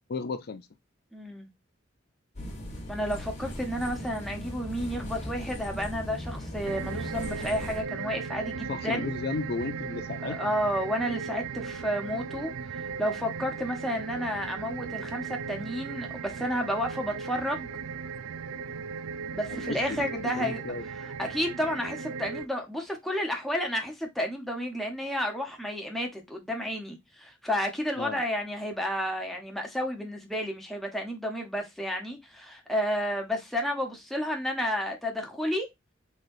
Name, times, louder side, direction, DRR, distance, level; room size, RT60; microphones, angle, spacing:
voice 1, 0.1-0.7 8.7-10.4 19.5-20.8 28.0-28.2, left 4 dB, 55° left, 0.4 m, -34 dB
voice 2, 1.1-1.5 2.9-9.1 10.2-12.5 13.0-17.7 19.3-20.6 21.2-35.7, equal, ahead, 1.0 m, -31 dB
sound 1, 2.3-7.8, left 1 dB, 35° left, 1.3 m, -38 dB
sound 2, 6.6-22.5, right 5 dB, 80° right, 0.4 m, -37 dB
3.9 x 3.2 x 2.6 m
head